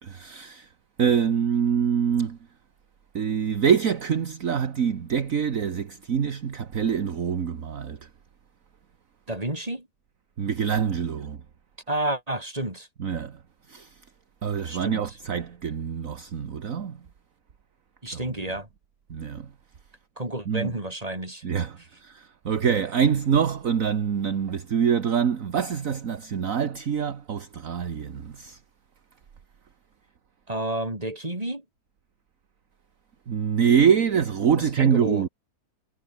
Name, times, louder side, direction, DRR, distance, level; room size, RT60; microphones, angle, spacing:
voice 1, 0.0-0.7 1.0-2.4 3.1-8.1 10.4-11.4 13.0-13.4 13.7-14.0 14.4-17.0 18.1-18.2 19.1-19.5 20.5-20.7 21.4-28.6 33.3-35.3, right 7 dB, 55° right, 1.7 m, -25 dB
voice 2, 9.3-9.9 11.9-12.9 14.6-15.1 18.0-18.7 20.2-21.4 30.5-31.6 34.6-35.3, right 1 dB, 20° right, 5.0 m, -30 dB
omnidirectional pair, 1.7 m